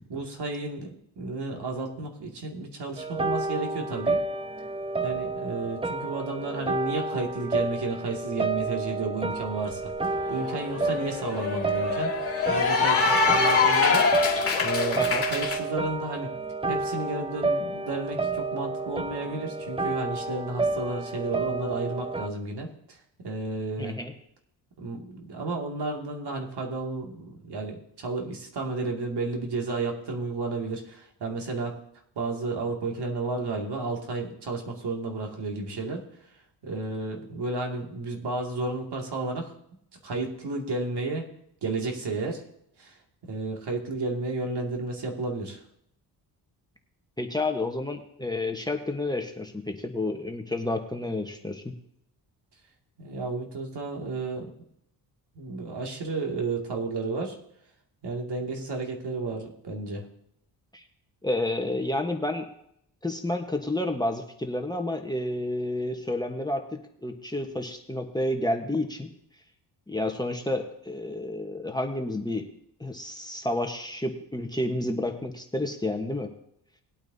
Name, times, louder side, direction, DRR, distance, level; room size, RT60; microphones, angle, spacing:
voice 1, 0.1-4.2 5.0-15.0 15.3-16.3 16.7-23.0 23.2-24.0 24.8-31.7 32.2-36.0 36.6-39.5 40.0-41.2 41.6-42.4 42.8-43.0 43.2-45.6 53.0-54.5 55.4-57.4 58.0-60.0, right 3 dB, 60° right, 1 dB, 2.5 m, -32 dB
sound 1, 3.0-22.3, right 3 dB, 15° right, 0.5 m, -30 dB
Cheering / Applause, 10.1-15.6, left 4 dB, 30° left, 2.4 m, -24 dB
voice 2, 23.8-24.1 47.2-51.7 60.7-60.8 61.2-62.4 63.0-69.1 69.9-72.5 72.8-76.3, left 1 dB, 10° left, 4 dB, 1.2 m, -30 dB
19.5 x 8.8 x 2.8 m, 0.73 s
cardioid pair, 75°, 45 cm